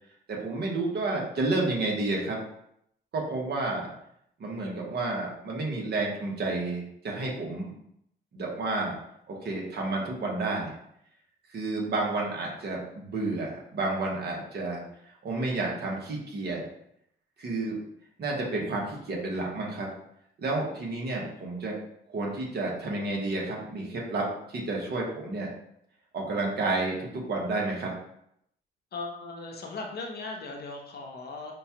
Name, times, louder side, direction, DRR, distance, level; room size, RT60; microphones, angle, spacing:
voice 1, 0.3-2.4 3.1-3.9 4.4-7.7 8.3-9.0 9.3-10.7 11.5-14.8 15.2-16.6 17.4-17.8 18.2-19.9 20.4-21.8 22.1-25.5 26.1-27.9, right 2 dB, 55° right, -2 dB, 1.2 m, -30 dB
voice 2, 28.9-31.5, left 3 dB, 55° left, 1 dB, 0.8 m, -38 dB
5.1 x 2.3 x 2.9 m, 0.73 s
cardioid pair, 90°, 20 cm